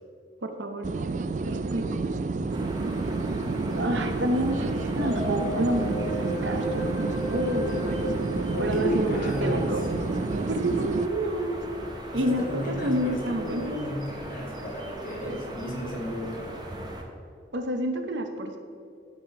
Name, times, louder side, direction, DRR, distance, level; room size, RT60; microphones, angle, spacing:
voice 1, 0.4-0.9 1.5-1.8 3.7-10.0 10.5-11.6 12.1-13.8 17.5-18.6, right 1 dB, 75° right, 5 dB, 0.8 m, -29 dB
sound 1, 0.8-11.1, right 3 dB, 40° right, 0.3 m, -29 dB
sound 2, 2.5-17.0, right 1 dB, 25° right, 1.0 m, -39 dB
sound 3, 5.0-9.2, equal, 85° left, 2.3 m, -34 dB
voice 2, 8.6-9.7 12.1-16.6, left 1 dB, 45° left, -2 dB, 1.9 m, -33 dB
12.0 x 4.3 x 5.3 m, 2.5 s
head